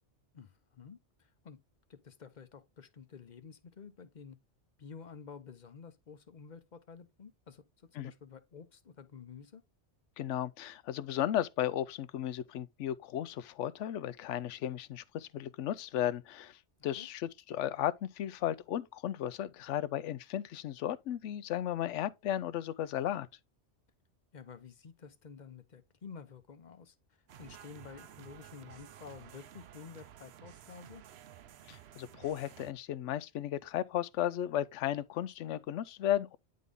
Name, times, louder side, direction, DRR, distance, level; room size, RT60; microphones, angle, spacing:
voice 1, 0.3-1.6 1.9-4.4 4.8-7.6 7.9-9.6 17.0-17.1 24.3-26.9 27.4-31.0, left 6 dB, 45° left, 0.7 m, -51 dB
voice 2, 10.2-23.3 31.7-36.4, left 11 dB, 90° left, 0.9 m, -35 dB
sound 1, 27.3-32.7, right 10 dB, 70° right, 0.8 m, -53 dB
9.4 x 3.8 x 3.6 m
omnidirectional pair, 1.2 m